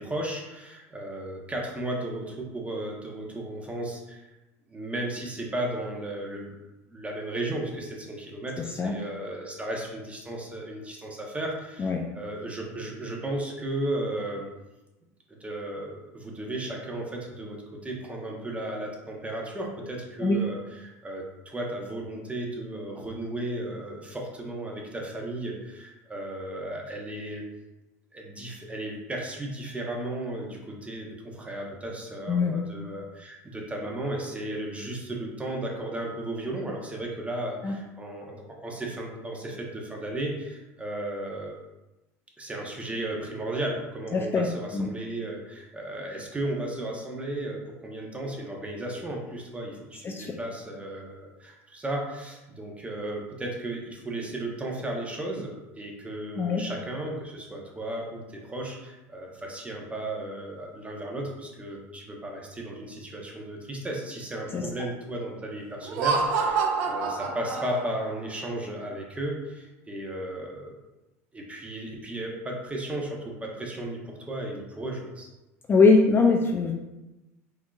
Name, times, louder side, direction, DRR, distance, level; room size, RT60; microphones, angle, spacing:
voice 1, 0.0-4.3 4.7-6.6 6.9-14.5 15.3-27.4 28.1-41.5 42.4-70.7 71.3-75.3, right 1 dB, 15° right, -1 dB, 0.9 m, -35 dB
voice 2, 44.1-44.5 44.7-44.9 50.0-50.3 56.4-56.6 64.5-64.6 75.7-76.7, left 4 dB, 25° left, 2 dB, 0.4 m, -21 dB
Laughter, 65.8-68.2, right 4 dB, 70° right, 0.6 m, -27 dB
4.4 x 2.8 x 2.4 m, 1.0 s
hypercardioid pair, 85°, 8 cm